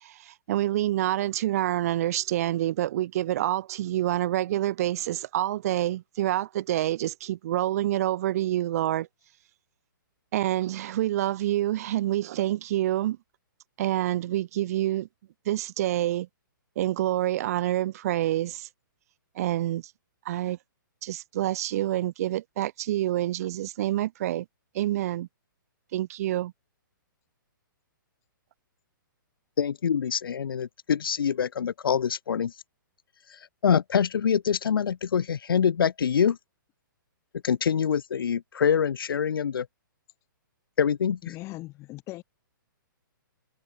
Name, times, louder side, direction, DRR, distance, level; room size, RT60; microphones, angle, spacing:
voice 1, 0.0-9.1 10.3-13.2 13.8-15.1 15.5-16.3 16.8-18.7 19.4-19.8 20.3-20.6 21.0-24.5 24.7-25.3 25.9-26.5, right 13 dB, 45° right, 0.7 m, -27 dB
voice 2, 29.6-32.5 33.6-36.4 37.4-39.7 40.8-41.2, left 7 dB, 90° left, 0.7 m, -25 dB
voice 3, 41.2-42.2, left 19 dB, 25° left, 4.5 m, -39 dB
hypercardioid pair, 155°, 11 cm